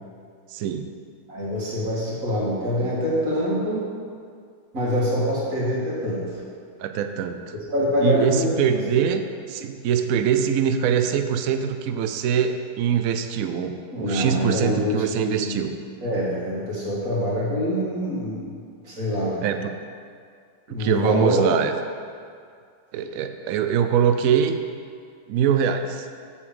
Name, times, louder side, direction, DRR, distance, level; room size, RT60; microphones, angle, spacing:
voice 1, 0.5-0.9 6.8-7.4 8.0-15.7 19.4-19.7 20.7-21.7 22.9-24.6 25.3-26.1, right 8 dB, 90° right, 7 dB, 0.7 m, -23 dB
voice 2, 1.3-3.9 4.7-6.4 7.7-8.5 8.9-9.1 13.9-15.7 16.0-18.6 18.8-19.4 20.7-21.5, equal, 45° right, -6 dB, 2.4 m, -25 dB
6.9 x 5.5 x 7.0 m, 2.2 s
omnidirectional pair, 2.0 m